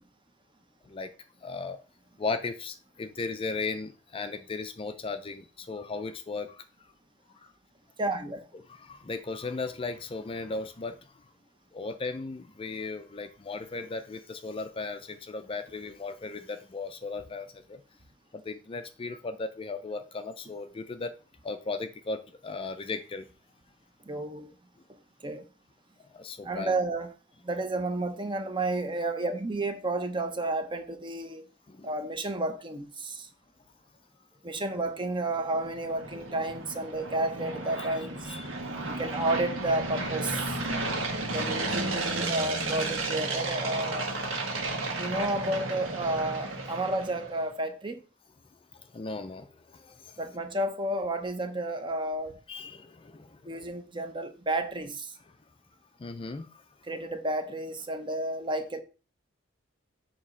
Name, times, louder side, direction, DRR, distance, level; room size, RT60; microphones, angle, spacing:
voice 1, 1.4-1.8 2.2-6.6 7.4-7.5 8.7-11.1 11.7-17.8 18.3-21.1 21.4-23.3 26.1-26.7 31.7-31.9 37.8-37.9 38.2-38.9 48.7-50.2 52.5-53.6 56.0-56.6, left 3 dB, 25° left, 0.4 m, -36 dB
voice 2, 8.0-8.5 24.1-24.5 25.2-25.4 26.4-27.1 27.4-31.4 31.8-33.3 34.4-38.3 38.9-40.5 41.3-44.1 45.0-48.0 50.2-52.3 53.4-55.1 56.9-58.8, right 2 dB, 25° right, 0.8 m, -31 dB
sound 1, 35.1-47.4, right 2 dB, 80° right, 1.5 m, -33 dB
7.2 x 3.0 x 5.4 m
head